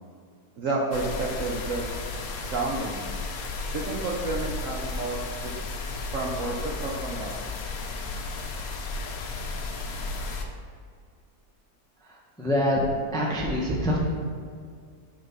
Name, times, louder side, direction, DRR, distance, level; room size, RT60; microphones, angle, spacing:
voice 1, 0.6-1.9 2.5-3.0 3.7-5.5 6.1-7.5, right 3 dB, 65° right, -2 dB, 0.8 m, -30 dB
sound 1, 0.9-10.4, left 3 dB, 60° left, 1.0 m, -34 dB
voice 2, 12.0-12.8 13.1-14.0, equal, 5° left, -2 dB, 0.4 m, -26 dB
6.2 x 4.0 x 5.8 m, 2.2 s
omnidirectional pair, 2.0 m